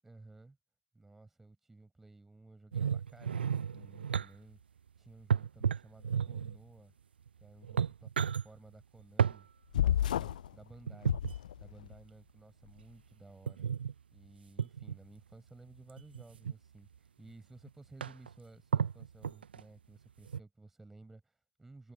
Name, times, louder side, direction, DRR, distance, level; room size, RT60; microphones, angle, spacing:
voice 1, 0.0-0.6 0.9-4.6 5.0-6.9 7.4-11.2 11.6-13.7 14.1-16.9 17.2-21.9, right 2 dB, 5° right, 5.6 m, -56 dB
sound 1, 2.7-4.3 5.3-6.6 7.3-7.4 7.6-8.4 9.2-9.4 10.9-11.3 13.5-13.9 14.6-15.0 16.0-16.5 17.3-17.4 17.7-17.8 18.0-18.3 18.7-19.6 20.3-20.4, right 7 dB, 55° right, 0.7 m, -32 dB
sound 2, 9.7-10.5 11.0-11.9, left 11 dB, 40° left, 0.4 m, -31 dB
figure-of-eight pair, 140°, 6 cm